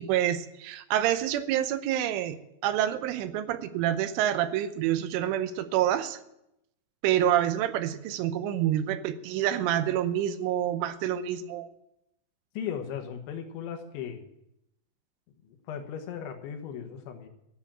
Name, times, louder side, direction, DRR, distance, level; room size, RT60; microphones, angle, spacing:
voice 1, 0.0-2.4 2.6-6.2 7.0-11.7, right 11 dB, 85° right, 11 dB, 3.3 m, -27 dB
voice 2, 12.5-14.3 15.4-17.3, left 8 dB, 75° left, 5 dB, 3.4 m, -37 dB
14.0 x 7.3 x 8.8 m, 0.84 s
omnidirectional pair, 5.6 m